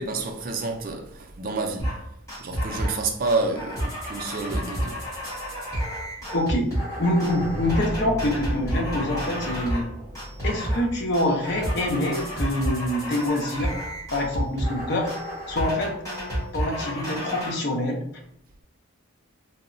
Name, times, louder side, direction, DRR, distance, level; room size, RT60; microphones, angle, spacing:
voice 1, 0.0-2.0 2.4-5.1, right 3 dB, 40° right, 0.4 m, -29 dB
sound 1, 1.8-2.0 2.3-3.0 3.3-9.9 10.2-10.9 11.1-17.5, equal, 15° left, 1.3 m, -30 dB
voice 2, 6.3-6.7 7.0-9.9 10.4-13.7 14.1-15.1 15.5-15.9 16.5-18.0, left 1 dB, 55° left, 0.5 m, -25 dB
sound 2, 7.2-11.1, equal, 15° right, 0.9 m, -36 dB
2.7 x 2.0 x 2.5 m
head